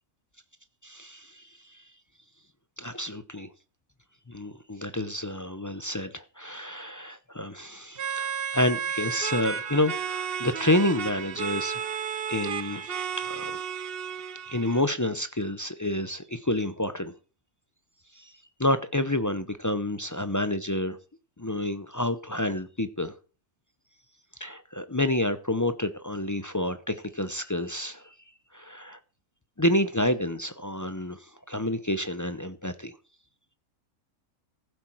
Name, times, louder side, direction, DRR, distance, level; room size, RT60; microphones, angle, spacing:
voice 1, 0.8-1.9 2.8-3.5 4.3-13.6 14.5-17.1 18.1-18.3 18.6-21.0 21.4-23.1 24.3-28.2 28.5-29.0 29.6-33.0, left 1 dB, 25° left, 0.3 m, -29 dB
sound 1, 8.0-14.8, right 7 dB, 50° right, 0.8 m, -33 dB
15.0 x 8.1 x 4.5 m
omnidirectional pair, 1.6 m